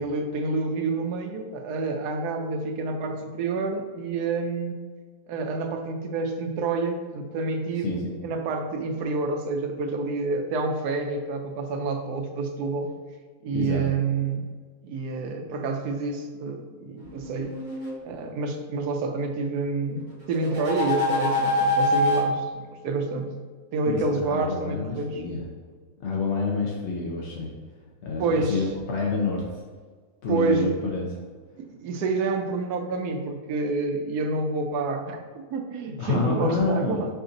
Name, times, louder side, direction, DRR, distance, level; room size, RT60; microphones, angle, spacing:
voice 1, 0.0-4.8 5.3-12.9 13.4-14.4 14.8-17.5 18.0-23.3 23.7-25.2 28.2-28.6 30.3-30.8 31.6-37.1, right 3 dB, 90° right, 4 dB, 1.2 m, -28 dB
voice 2, 7.8-8.1 13.5-13.8 23.9-25.4 26.0-27.5 28.0-29.4 30.2-31.0 36.0-37.1, left 4 dB, 60° left, -2 dB, 0.7 m, -28 dB
sound 1, 17.1-17.9 20.3-22.3, left 2 dB, 35° right, 1.2 m, -25 dB
4.9 x 2.5 x 3.8 m, 1.5 s
omnidirectional pair, 1.6 m